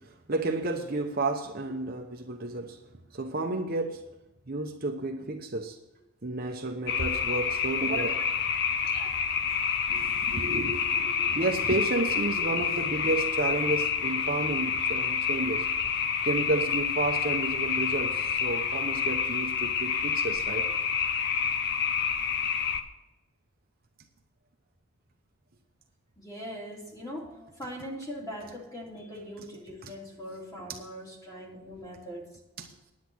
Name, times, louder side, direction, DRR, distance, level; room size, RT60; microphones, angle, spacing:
voice 1, 0.3-2.8 3.1-4.0 4.5-5.8 6.2-8.1 8.8-9.1 9.9-15.7 16.2-20.7 29.8-29.9 32.6-32.7, right 2 dB, 45° right, 3 dB, 0.9 m, -31 dB
sound 1, 6.9-22.8, left 6 dB, 50° left, 0.8 m, -28 dB
voice 2, 26.2-32.3, equal, 15° left, -3 dB, 2.9 m, -41 dB
10.5 x 8.5 x 6.1 m, 0.96 s
head